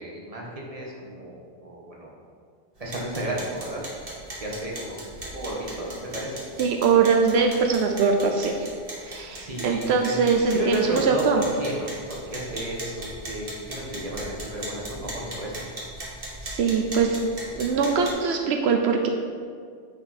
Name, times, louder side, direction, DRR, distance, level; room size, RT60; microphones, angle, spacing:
voice 1, 0.0-2.1 2.8-3.8 4.4-6.3 9.3-11.2 11.6-15.7, right 1 dB, 35° right, -3 dB, 1.4 m, -33 dB
sound 1, 2.8-18.1, right 1 dB, 60° right, 1.7 m, -39 dB
voice 2, 6.6-8.7 9.0-11.4 16.4-17.2 17.5-19.1, right 5 dB, 85° right, 4 dB, 0.9 m, -22 dB
9.6 x 5.1 x 4.2 m, 2.1 s
omnidirectional pair, 1.1 m